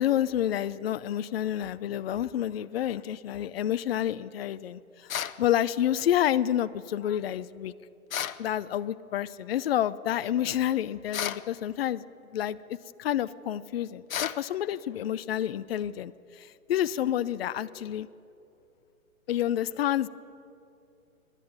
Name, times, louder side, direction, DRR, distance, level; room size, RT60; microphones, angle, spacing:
voice 1, 0.0-7.7 8.4-12.0 12.3-18.1 19.3-20.1, left 11 dB, 45° left, 14 dB, 0.5 m, -29 dB
sound 1, 5.1-5.4 8.1-8.4 11.1-11.5 14.1-14.4, left 9 dB, 70° left, 0.9 m, -32 dB
26.0 x 11.0 x 9.3 m, 2.7 s
hypercardioid pair, 145°, 43 cm